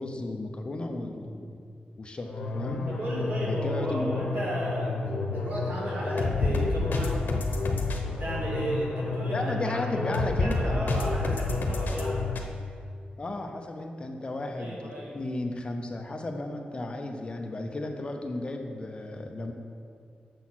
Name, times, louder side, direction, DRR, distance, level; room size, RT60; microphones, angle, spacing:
voice 1, 0.0-1.6 2.0-2.9 3.5-4.1 9.3-10.9 13.2-19.5, left 2 dB, 35° left, 4 dB, 0.7 m, -34 dB
sound 1, 2.2-12.4, left 3 dB, 90° left, 0.8 m, -29 dB
voice 2, 2.9-7.3 8.0-12.2 14.6-15.2, right 1 dB, 75° right, -5 dB, 2.3 m, -34 dB
7.2 x 6.2 x 6.1 m, 2.3 s
wide cardioid pair, 130°, 3 cm